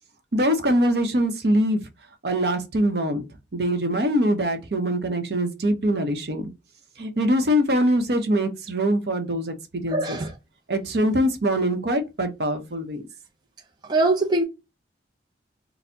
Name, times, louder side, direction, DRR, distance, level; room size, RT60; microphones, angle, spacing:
voice 1, 0.3-1.8 2.2-3.2 3.5-6.4 7.0-10.2 10.7-13.0, equal, 60° right, 0.7 m, -23 dB
voice 2, 9.9-10.3 13.9-14.4, right 2 dB, 25° right, 0.4 m, -22 dB
4.2 x 2.0 x 2.6 m
head